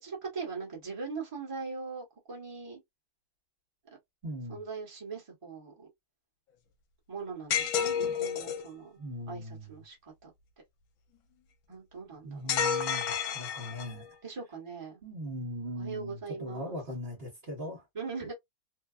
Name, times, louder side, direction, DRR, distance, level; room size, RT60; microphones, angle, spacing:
voice 1, 0.0-2.8 4.5-5.9 7.1-9.0 9.3-10.3 11.7-12.6 14.2-15.0 15.7-16.8 17.9-18.3, right 4 dB, 25° right, 1.1 m, -40 dB
voice 2, 4.2-4.6 9.0-9.7 12.2-14.1 15.0-17.8, equal, 45° right, 1.2 m, -39 dB
sound 1, 7.5-8.7 12.5-14.1, left 8 dB, 80° left, 1.1 m, -30 dB
2.8 x 2.2 x 2.3 m
omnidirectional pair, 1.6 m